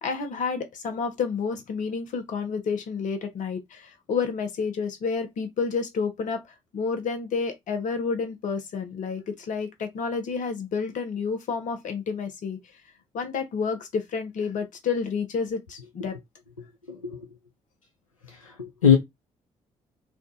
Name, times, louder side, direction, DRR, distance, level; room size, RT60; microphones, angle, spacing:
voice 1, 0.0-12.6 13.1-16.2, left 5 dB, 50° left, 0.8 m, -30 dB
voice 2, 16.9-17.3 18.3-19.0, left 8 dB, 85° left, 0.4 m, -22 dB
3.5 x 2.2 x 2.6 m
figure-of-eight pair, 40°, 17 cm